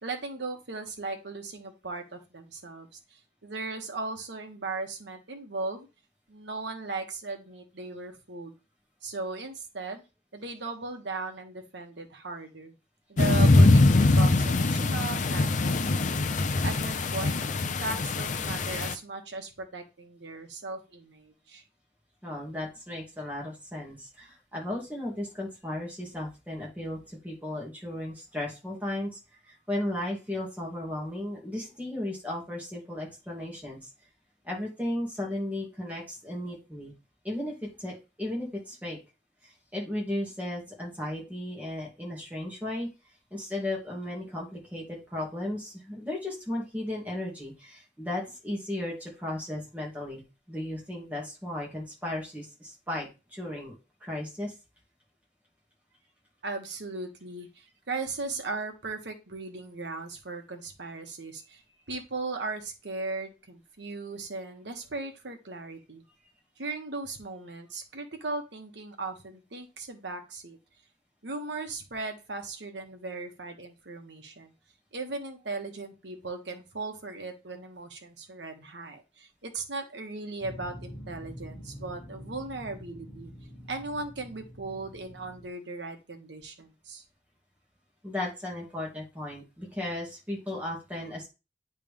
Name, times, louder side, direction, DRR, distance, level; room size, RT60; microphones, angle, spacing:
voice 1, 0.0-5.9 6.3-8.5 9.0-10.0 10.3-12.7 13.1-16.3 16.6-17.4 17.8-21.6 56.4-61.6 61.9-66.0 66.6-70.6 71.2-74.5 74.9-83.3 83.7-87.0, right 3 dB, 70° right, 4 dB, 1.2 m, -37 dB
sound 1, 13.2-18.9, left 2 dB, 45° left, 0.5 m, -23 dB
voice 2, 22.2-29.2 29.5-33.8 34.4-36.9 37.2-39.0 39.4-42.9 43.3-50.2 50.5-54.5 88.0-91.3, left 1 dB, 10° right, -3 dB, 2.2 m, -35 dB
sound 2, 80.4-85.5, equal, 20° left, 1.2 m, -45 dB
9.1 x 3.4 x 3.5 m, 0.29 s
head